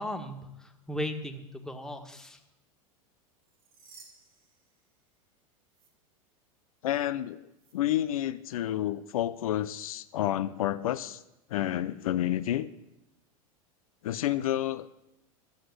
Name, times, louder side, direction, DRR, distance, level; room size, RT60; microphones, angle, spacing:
voice 1, 0.0-2.4, left 1 dB, 5° left, 1.7 m, -37 dB
sound 1, 3.3-5.3 5.7-5.9 7.5-7.7, right 5 dB, 75° right, 3.8 m, -57 dB
voice 2, 6.8-7.4 7.7-11.2 11.5-12.7 14.0-14.9, left 12 dB, 75° left, 0.7 m, -29 dB
13.5 x 7.7 x 8.1 m
hypercardioid pair, 95°, 18 cm